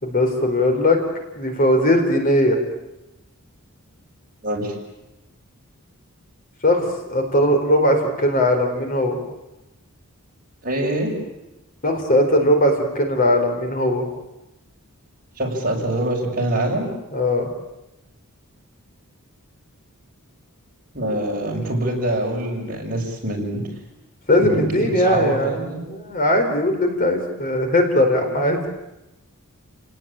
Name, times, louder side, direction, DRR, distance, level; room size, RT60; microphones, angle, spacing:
voice 1, 0.0-1.0 1.4-2.6 6.6-9.2 11.8-14.0 17.1-17.5 24.3-28.6, left 1 dB, 40° left, 4 dB, 4.5 m, -19 dB
voice 2, 4.4-4.7 10.6-11.1 15.4-16.9 20.9-23.6 24.4-25.8, right 1 dB, 40° right, -1 dB, 6.8 m, -24 dB
29.5 x 18.5 x 9.0 m, 0.96 s
head